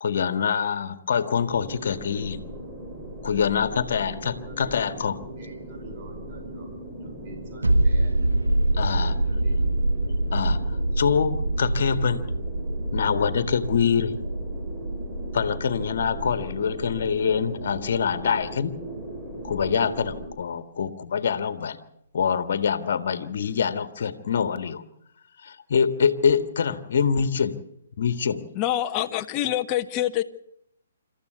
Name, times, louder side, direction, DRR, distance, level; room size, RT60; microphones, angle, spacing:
voice 1, 0.0-2.4 3.2-5.2 8.8-9.2 10.3-10.6 11.0-12.2 12.9-14.1 15.3-18.7 19.4-21.8 22.1-24.8 25.4-27.6 28.0-28.5, left 7 dB, 55° left, 11 dB, 1.8 m, -25 dB
sound 1, 1.5-20.3, right 1 dB, 15° right, 4.9 m, -38 dB
voice 2, 3.3-3.9 4.4-6.7 7.0-8.2 8.9-9.6, right 2 dB, 40° right, 4 dB, 5.1 m, -47 dB
sound 2, 7.6-19.0 19.3-19.4, right 1 dB, 90° right, 1.9 m, -26 dB
voice 3, 28.5-30.2, left 12 dB, 30° left, 10 dB, 1.1 m, -25 dB
26.5 x 14.0 x 8.2 m, 0.79 s
figure-of-eight pair, 135°, 0 cm